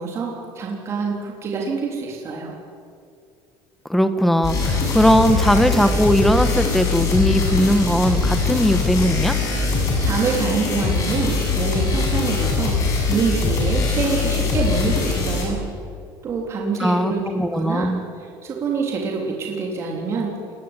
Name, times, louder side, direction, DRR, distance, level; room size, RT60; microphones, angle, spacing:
voice 1, 0.0-2.5 10.0-12.8 13.1-15.6 16.2-17.2 17.5-17.9 18.2-20.3, right 4 dB, 30° right, -1 dB, 3.7 m, -25 dB
voice 2, 3.9-9.3 16.8-18.0, equal, ahead, 9 dB, 1.5 m, -19 dB
sound 1, 4.4-15.4, left 4 dB, 35° left, 7.8 m, -22 dB
29.0 x 21.0 x 9.2 m, 2.4 s
cardioid pair, 170°, 10 cm